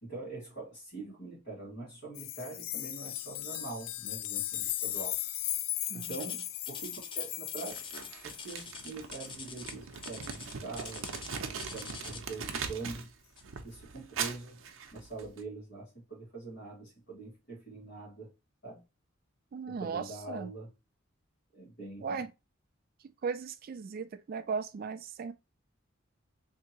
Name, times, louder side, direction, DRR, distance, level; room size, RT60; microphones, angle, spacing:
voice 1, 0.0-5.2 5.9-13.1 13.6-14.6 14.9-18.3 18.6-18.8 19.7-20.7 21.5-22.2, right 3 dB, 60° left, 1.9 m, -44 dB
sound 1, 2.1-8.6 10.9-11.0, left 13 dB, 90° left, 0.4 m, -37 dB
sound 2, 6.0-12.4 13.4-13.6 14.2-14.3 15.0-15.1, left 5 dB, 25° left, 0.4 m, -46 dB
Crumpling crinkling, 7.7-13.1 13.4-15.4, right 6 dB, 85° right, 0.6 m, -41 dB
voice 2, 19.5-20.5 22.0-22.3 23.2-25.3, right 5 dB, 50° right, 0.3 m, -37 dB
3.4 x 2.8 x 2.8 m
head